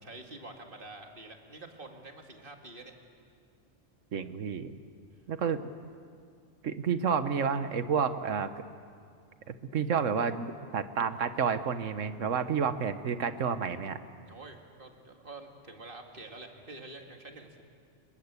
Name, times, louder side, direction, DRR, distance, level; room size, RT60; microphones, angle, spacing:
voice 1, 0.0-2.9 14.3-17.6, right 2 dB, 45° right, 3 dB, 2.3 m, -47 dB
voice 2, 4.1-4.7 5.3-5.7 6.6-8.5 9.5-14.0, right 6 dB, 80° right, 11 dB, 1.4 m, -30 dB
27.5 x 20.5 x 8.3 m, 2.2 s
omnidirectional pair, 1.3 m